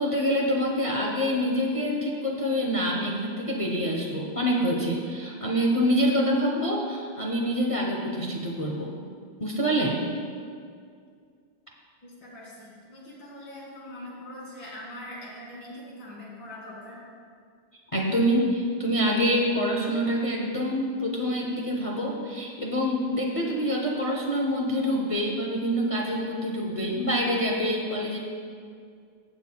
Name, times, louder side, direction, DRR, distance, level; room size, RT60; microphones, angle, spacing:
voice 1, 0.0-8.9 9.4-10.0 17.9-28.2, equal, 55° left, -2 dB, 0.3 m, -26 dB
voice 2, 12.0-17.0, left 1 dB, 90° left, -6 dB, 3.0 m, -42 dB
16.0 x 7.1 x 2.3 m, 2.2 s
omnidirectional pair, 2.0 m